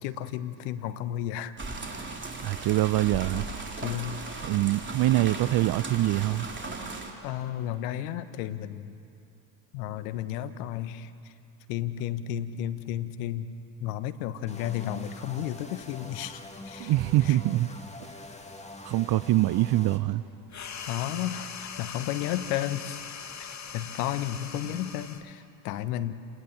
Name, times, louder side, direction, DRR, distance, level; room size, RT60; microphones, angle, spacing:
voice 1, 0.0-1.6 1.8-2.2 3.8-4.4 7.2-8.9 9.7-11.1 11.7-13.5 13.8-17.0 17.3-17.4 20.8-23.0 23.4-23.5 23.7-26.1, left 11 dB, 70° left, 12 dB, 1.3 m, -33 dB
sound 1, 1.6-7.1, right 3 dB, 25° right, 3.4 m, -37 dB
voice 2, 2.4-3.5 4.4-6.5 16.8-17.7 18.8-20.2, right 16 dB, 50° right, 19 dB, 0.7 m, -24 dB
sound 2, 14.5-20.0, left 2 dB, 15° left, 2.6 m, -44 dB
sound 3, 20.5-25.3, left 7 dB, 35° left, 1.8 m, -40 dB
29.5 x 19.0 x 7.3 m, 2.6 s
hypercardioid pair, 65°, 48 cm